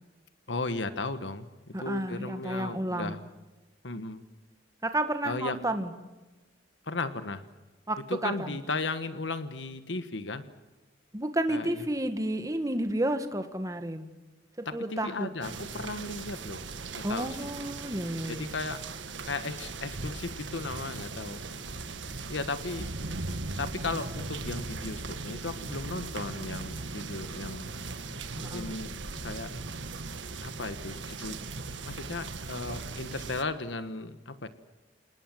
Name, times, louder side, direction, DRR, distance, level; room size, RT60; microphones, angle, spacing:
voice 1, 0.5-3.2 3.8-4.2 5.2-5.6 6.8-7.4 8.1-10.4 11.5-11.8 14.6-16.7 16.9-17.4 18.3-18.8 19.2-21.4 22.3-22.9 23.6-27.7 28.4-28.9 29.2-29.5 30.4-34.5, left 3 dB, 70° left, 11 dB, 1.4 m, -36 dB
voice 2, 1.7-3.2 4.8-5.9 7.9-8.6 11.1-14.1 14.6-15.3 17.0-18.6 28.4-28.7, right 1 dB, 20° right, 8 dB, 1.8 m, -31 dB
sound 1, 15.4-33.4, right 3 dB, 75° right, 1.7 m, -38 dB
27.5 x 20.0 x 7.7 m, 1.2 s
head